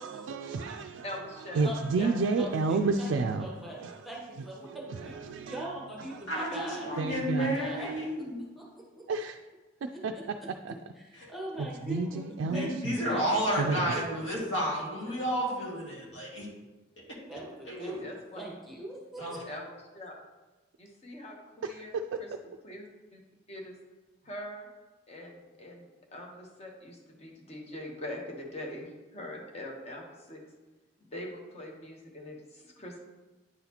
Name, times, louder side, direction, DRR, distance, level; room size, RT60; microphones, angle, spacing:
voice 1, 0.0-4.1 4.4-6.3 7.0-7.5 9.1-9.4 9.8-10.4 10.6-10.8 11.6-12.9 13.6-13.9 21.6-22.2, right 3 dB, 85° right, 0.3 m, -32 dB
voice 2, 1.0-1.7 2.0-2.1 11.2-11.5 11.8-12.2 14.2-14.3 15.0-15.2 18.0-18.4 19.5-19.7 19.9-20.1 20.8-22.3 22.6-23.2 23.5-23.8 24.2-24.7 25.1-30.0 30.3-30.4 31.1-33.0, left 1 dB, 35° left, 1.0 m, -43 dB
voice 3, 1.6-2.1 2.4-3.1 3.4-3.8 4.0-5.2 5.4-7.9 8.6-9.0 11.0-13.6 13.9-14.0 17.3-17.9 18.3-19.4, right 1 dB, ahead, 1.0 m, -41 dB
voice 4, 6.3-8.4 11.1-11.3 12.5-16.5 17.7-18.1 19.2-19.4, equal, 80° left, 1.9 m, -31 dB
9.3 x 4.0 x 2.9 m
head